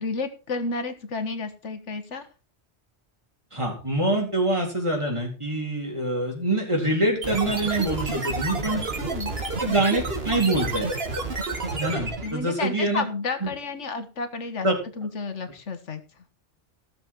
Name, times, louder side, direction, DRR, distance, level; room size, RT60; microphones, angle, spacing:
voice 1, 0.0-2.3 9.0-9.3 12.2-14.7 15.0-16.0, left 3 dB, 85° left, 9 dB, 1.7 m, -31 dB
voice 2, 3.5-8.8 9.6-10.9 11.7-13.1 13.4-13.5 14.6-14.7, right 1 dB, 25° right, -1 dB, 4.1 m, -25 dB
sound 1, 7.2-12.4, right 3 dB, 55° right, 2.3 m, -29 dB
17.0 x 7.0 x 4.4 m, 0.35 s
omnidirectional pair, 1.2 m